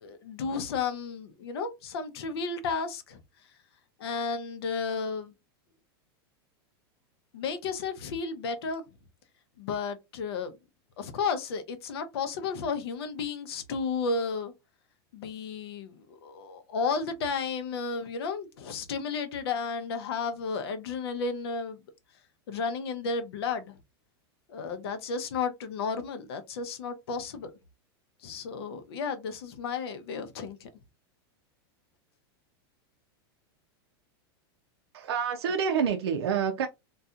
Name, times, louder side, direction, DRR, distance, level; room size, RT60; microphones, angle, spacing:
voice 1, 0.0-3.2 4.0-5.3 7.3-8.8 9.6-10.6 11.0-14.5 15.1-21.8 22.5-23.8 24.5-27.5 28.2-30.7, left 5 dB, 80° left, 0.6 m, -33 dB
voice 2, 34.9-36.7, right 7 dB, 90° right, 0.5 m, -27 dB
2.7 x 2.3 x 2.4 m
supercardioid pair, 130°, 13 cm